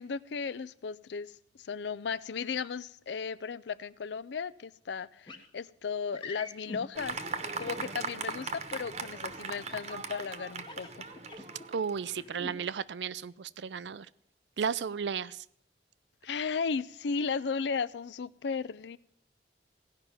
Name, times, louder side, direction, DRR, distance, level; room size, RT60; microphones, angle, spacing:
voice 1, 0.0-1.3 1.6-7.2 7.6-11.0 16.2-19.0, left 5 dB, 80° left, 19 dB, 0.5 m, -35 dB
sound 1, 5.3-5.5 6.1-6.8 7.6-8.2 9.7-10.1 10.6-11.6 12.1-12.5, left 3 dB, 30° left, 1.2 m, -45 dB
Fireworks, 6.9-12.7, right 4 dB, 40° right, 1.0 m, -39 dB
voice 2, 11.7-14.1 14.6-15.4, right 6 dB, 85° right, 18 dB, 0.5 m, -34 dB
16.0 x 5.7 x 9.2 m, 0.71 s
head